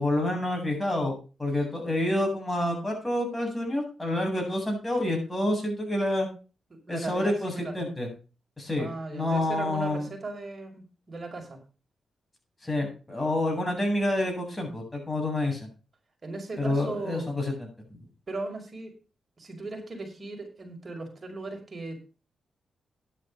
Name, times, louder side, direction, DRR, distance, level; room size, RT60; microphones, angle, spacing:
voice 1, 0.0-6.3 6.9-8.1 8.6-10.1 12.6-15.6 16.6-17.7, left 1 dB, 15° left, 2 dB, 8.0 m, -28 dB
voice 2, 6.7-7.8 8.8-11.6 16.2-17.3 18.3-18.9 19.4-22.0, right 2 dB, 40° right, 2 dB, 5.6 m, -37 dB
12.5 x 11.0 x 3.8 m, 0.34 s
cardioid pair, 70°, 0 cm